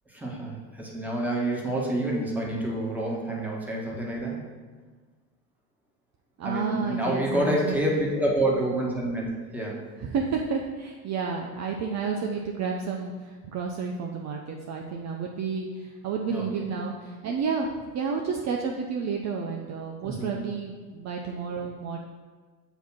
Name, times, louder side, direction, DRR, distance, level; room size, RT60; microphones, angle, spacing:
voice 1, 0.1-4.4 6.4-9.3 9.5-9.8 16.3-16.5 20.0-20.3, right 1 dB, 5° right, -3 dB, 1.5 m, -28 dB
voice 2, 6.4-7.8 10.0-17.7 17.9-22.0, right 5 dB, 40° right, 1 dB, 0.6 m, -31 dB
7.1 x 2.9 x 5.8 m, 1.4 s
supercardioid pair, 85°, 44 cm